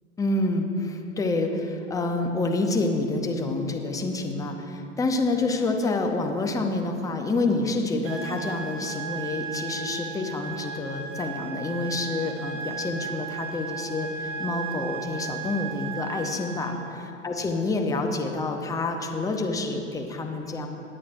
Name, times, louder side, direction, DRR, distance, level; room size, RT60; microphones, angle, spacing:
voice 1, 0.2-20.7, left 2 dB, 10° left, 3 dB, 0.9 m, -28 dB
sound 1, 8.0-17.0, right 6 dB, 30° right, 1.2 m, -36 dB
20.5 x 8.5 x 2.7 m, 2.7 s
figure-of-eight pair, 100°, 41 cm